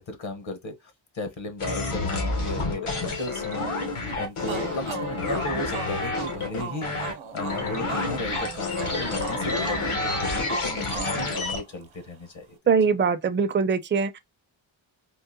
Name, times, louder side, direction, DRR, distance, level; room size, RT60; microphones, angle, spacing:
voice 1, 0.0-2.9 3.2-12.9, left 2 dB, 65° left, 1.0 m, -35 dB
sound 1, 1.6-11.6, left 3 dB, 85° left, 1.2 m, -29 dB
sound 2, 4.4-12.0, right 6 dB, 70° right, 0.7 m, -39 dB
voice 2, 12.7-14.2, right 5 dB, 25° right, 0.4 m, -22 dB
3.8 x 2.4 x 2.5 m
wide cardioid pair, 60°, 49 cm